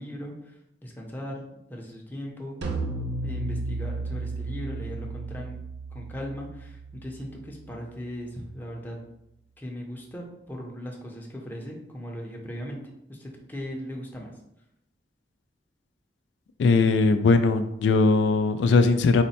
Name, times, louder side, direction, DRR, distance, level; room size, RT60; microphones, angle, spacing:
voice 1, 0.0-1.4 1.7-2.6 3.1-5.6 5.9-9.0 9.6-12.8 13.1-14.3, equal, 10° left, -1 dB, 0.6 m, -38 dB
sound 1, 2.6-8.0, right 2 dB, 75° right, 0.5 m, -34 dB
voice 2, 16.6-19.2, left 3 dB, 80° left, 8 dB, 0.3 m, -20 dB
4.2 x 2.2 x 4.1 m, 0.82 s
head